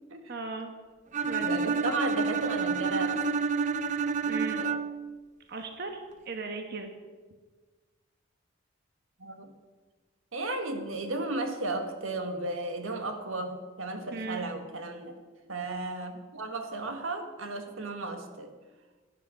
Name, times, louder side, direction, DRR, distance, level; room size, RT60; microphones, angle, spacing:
voice 1, 0.3-0.7 1.3-1.8 4.3-4.6 5.5-6.9 14.1-14.5, right 3 dB, 50° right, 5 dB, 1.3 m, -37 dB
Bowed string instrument, 1.1-5.1, right 5 dB, 35° right, 0.5 m, -29 dB
voice 2, 1.4-3.3 4.2-4.8 9.2-9.5 10.3-15.2 15.5-18.5, right 2 dB, 85° right, 6 dB, 1.7 m, -34 dB
16.5 x 10.5 x 6.4 m, 1.4 s
head